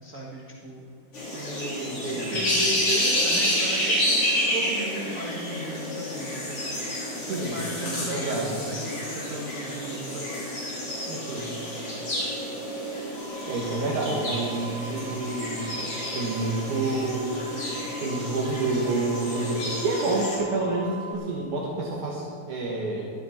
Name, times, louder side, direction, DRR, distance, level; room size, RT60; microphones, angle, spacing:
voice 1, 0.0-0.9 2.1-6.7 7.3-10.3, right 1 dB, 40° right, -3 dB, 1.1 m, -36 dB
sound 1, 1.1-20.4, left 1 dB, 45° left, 4.6 m, -29 dB
voice 2, 1.3-2.4 7.2-8.6 11.1-11.5 13.5-15.8 16.1-17.4 18.0-23.1, right 2 dB, 70° right, -4 dB, 3.0 m, -29 dB
sound 2, 13.1-21.1, right 3 dB, 90° right, 3.6 m, -43 dB
15.5 x 13.0 x 4.5 m, 2.6 s
omnidirectional pair, 3.6 m